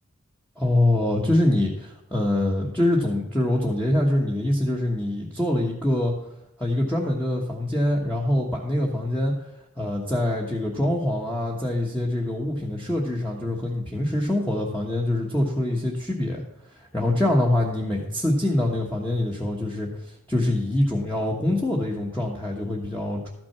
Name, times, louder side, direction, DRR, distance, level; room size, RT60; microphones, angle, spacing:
voice 1, 0.6-6.1 6.6-9.3 9.8-16.4 16.9-19.9 20.3-23.3, left 1 dB, 5° left, -3 dB, 1.2 m, -24 dB
13.0 x 6.1 x 5.8 m, 0.84 s
head